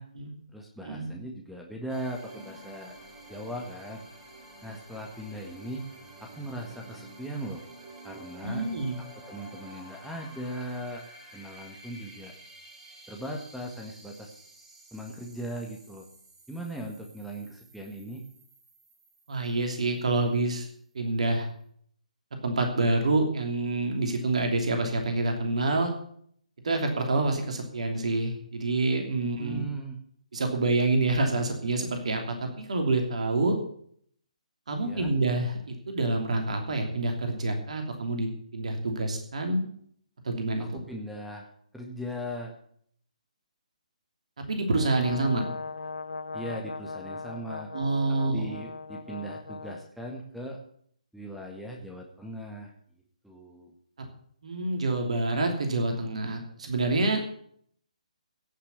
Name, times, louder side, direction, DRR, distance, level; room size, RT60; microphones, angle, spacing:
voice 1, 0.5-3.0 3.3-4.0 4.6-5.8 6.2-7.6 8.0-8.6 9.1-11.0 11.3-12.3 13.1-14.3 14.9-16.1 16.5-18.2 29.4-30.0 34.8-35.1 40.6-42.5 46.3-47.7 48.1-50.6 51.1-52.7 53.2-53.7, right 1 dB, ahead, 1 dB, 1.7 m, -39 dB
sound 1, 1.9-20.4, right 1 dB, 20° right, 4.8 m, -50 dB
voice 2, 8.4-9.0 19.3-20.7 20.9-21.5 22.4-25.9 26.6-29.7 30.3-33.6 34.7-39.6 40.2-40.8 44.4-45.5 47.7-48.6 54.4-57.2, right 2 dB, 60° right, 4 dB, 2.8 m, -27 dB
Brass instrument, 44.7-49.9, left 4 dB, 80° left, 1.2 m, -39 dB
16.5 x 6.7 x 8.3 m, 0.63 s
figure-of-eight pair, 135°, 4 cm